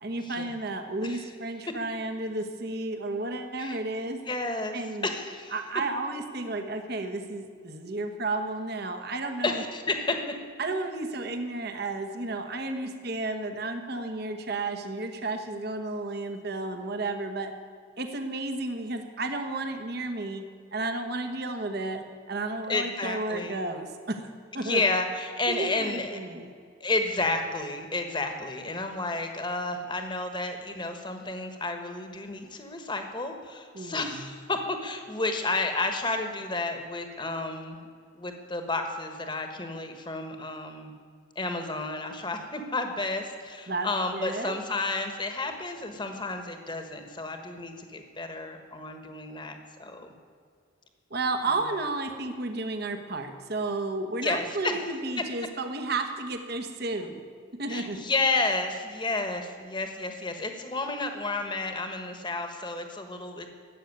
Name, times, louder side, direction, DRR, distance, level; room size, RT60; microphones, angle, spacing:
voice 1, 0.0-4.2 4.7-5.1 5.5-9.6 10.6-17.5 18.0-20.4 20.7-24.3 24.5-24.8 25.5-26.5 33.7-34.3 43.7-44.6 51.1-57.2 57.5-58.0, right 2 dB, 50° right, 6 dB, 1.2 m, -32 dB
voice 2, 4.3-4.8 5.0-5.5 9.4-10.2 22.7-23.6 24.6-26.2 26.8-37.8 38.1-40.9 41.3-50.1 54.2-54.8 57.7-63.5, left 2 dB, 25° left, 6 dB, 1.3 m, -31 dB
13.5 x 8.1 x 9.6 m, 2.2 s
head